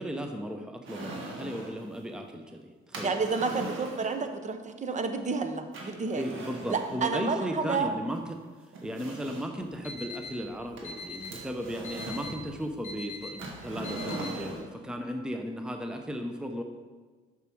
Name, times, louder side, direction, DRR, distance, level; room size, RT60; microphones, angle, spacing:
voice 1, 0.0-3.2 6.1-8.4 8.8-16.6, equal, 5° right, 5 dB, 0.7 m, -36 dB
sound 1, 0.8-1.8 2.9-4.2 5.7-7.1 8.1-8.2 8.7-9.6 10.8-12.4 13.4-14.7, right 2 dB, 80° right, 1.6 m, -40 dB
voice 2, 3.0-6.2 6.7-7.9, right 4 dB, 35° right, 7 dB, 0.8 m, -30 dB
Alarm, 9.6-14.6, left 3 dB, 40° left, 1.3 m, -43 dB
6.8 x 6.2 x 4.5 m, 1.4 s
cardioid pair, 90°, 20 cm